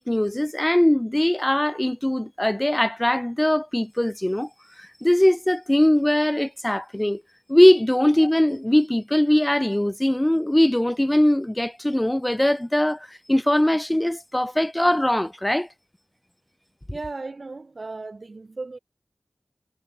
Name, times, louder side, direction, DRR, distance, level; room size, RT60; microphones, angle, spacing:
voice 1, 0.0-4.5 4.8-7.2 7.5-15.7, left 1 dB, 15° left, 5.2 m, -21 dB
voice 2, 16.9-18.8, right 3 dB, 55° right, 5.3 m, -35 dB
cardioid pair, 45°, 0 cm